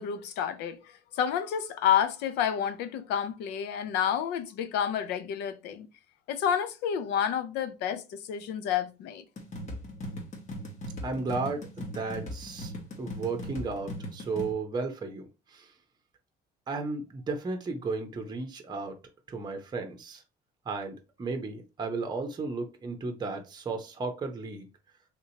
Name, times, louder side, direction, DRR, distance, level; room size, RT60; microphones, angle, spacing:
voice 1, 0.0-5.9 6.3-9.2, left 9 dB, 90° left, 0.5 m, -29 dB
sound 1, 9.4-14.5, equal, 45° left, 1.3 m, -39 dB
voice 2, 11.0-12.7 13.0-15.7 16.7-19.0 19.3-20.2 20.7-24.7, right 3 dB, 25° right, 0.8 m, -34 dB
3.6 x 2.8 x 2.8 m
cardioid pair, 110°, 17 cm